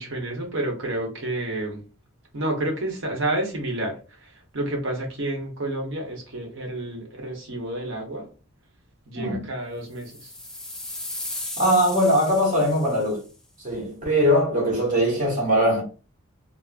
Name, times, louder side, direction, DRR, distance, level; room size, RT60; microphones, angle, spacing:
voice 1, 0.0-1.8 2.3-8.3 9.1-10.3, right 1 dB, 60° right, 1.0 m, -30 dB
voice 2, 9.1-9.4 11.6-13.2 13.6-15.8, equal, 40° right, 1.1 m, -21 dB
sound 1, 10.0-13.2, left 1 dB, 5° left, 0.3 m, -36 dB
3.5 x 2.0 x 2.4 m
head